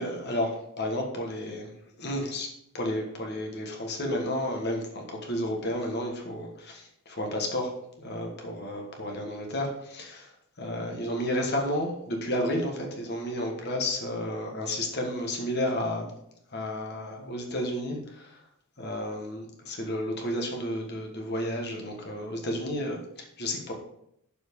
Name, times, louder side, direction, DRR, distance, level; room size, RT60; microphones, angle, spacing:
voice 1, 0.0-1.7 2.0-2.5 2.7-7.7 8.0-16.1 16.5-18.4 18.8-23.7, left 1 dB, 50° left, 1 dB, 1.5 m, -32 dB
7.2 x 4.5 x 5.3 m, 0.76 s
head